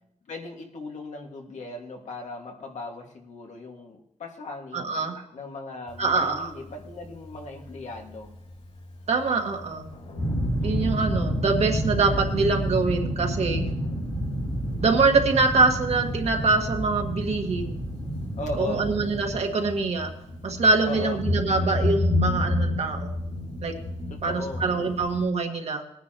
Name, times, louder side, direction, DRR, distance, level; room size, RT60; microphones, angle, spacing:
voice 1, 0.3-5.0 5.3-8.3 10.6-11.0 18.4-18.9 20.8-21.2 24.1-24.7, left 2 dB, 80° left, 1 dB, 2.0 m, -37 dB
voice 2, 4.7-5.2 6.0-6.5 9.1-9.9 10.6-13.7 14.8-17.8 18.6-20.1 20.4-23.1 23.6-23.7 24.2-25.8, right 3 dB, 65° right, 3 dB, 1.7 m, -24 dB
Thunder, 5.9-25.2, left 2 dB, 60° left, 4.2 m, -33 dB
sound 1, 10.2-19.4, equal, 15° left, 1.7 m, -29 dB
20.0 x 10.0 x 3.0 m, 0.80 s
wide cardioid pair, 150°, 12 cm